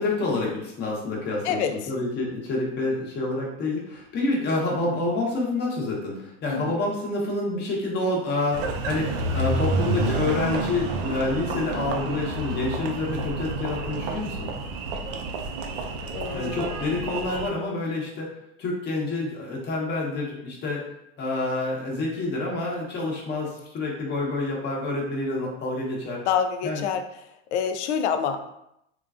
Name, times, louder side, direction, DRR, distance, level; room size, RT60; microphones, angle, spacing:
voice 1, 0.0-14.5 16.3-18.3 18.6-20.8 21.2-26.2 26.6-26.8, left 2 dB, 30° left, -2 dB, 0.9 m, -28 dB
voice 2, 1.4-1.9 6.5-6.8 16.1-17.1 26.3-27.0 27.5-28.5, left 7 dB, 80° left, 7 dB, 0.5 m, -27 dB
Engine, 8.5-17.5, right 3 dB, 55° right, 0.5 m, -29 dB
3.7 x 2.2 x 2.4 m, 0.81 s
supercardioid pair, 120°, 34 cm